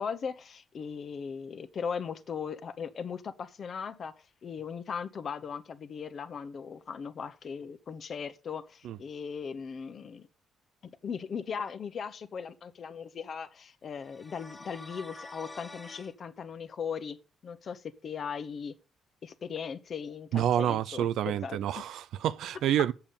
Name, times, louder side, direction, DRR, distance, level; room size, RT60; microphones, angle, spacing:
voice 1, 0.0-10.3 10.8-18.7 19.2-21.6, left 6 dB, 50° left, 0.9 m, -38 dB
sound 1, 14.0-16.1, left 2 dB, 20° left, 1.6 m, -47 dB
voice 2, 20.3-22.9, right 11 dB, 80° right, 0.4 m, -28 dB
7.0 x 7.0 x 5.5 m
cardioid pair, 90°, 0 cm